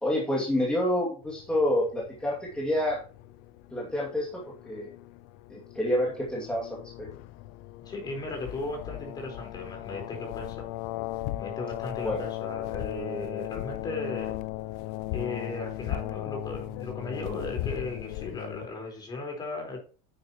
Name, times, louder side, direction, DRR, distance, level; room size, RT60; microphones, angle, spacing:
voice 1, 0.0-3.0 3.7-4.9 5.5-7.1 12.0-12.3, left 1 dB, 5° left, -4 dB, 2.4 m, -28 dB
sound 1, 1.2-18.7, left 16 dB, 60° left, 0.6 m, -37 dB
voice 2, 7.8-10.6 11.3-14.3 15.1-19.8, left 2 dB, 25° left, 2 dB, 4.4 m, -36 dB
10.0 x 9.4 x 3.1 m, 0.38 s
supercardioid pair, 145°, 18 cm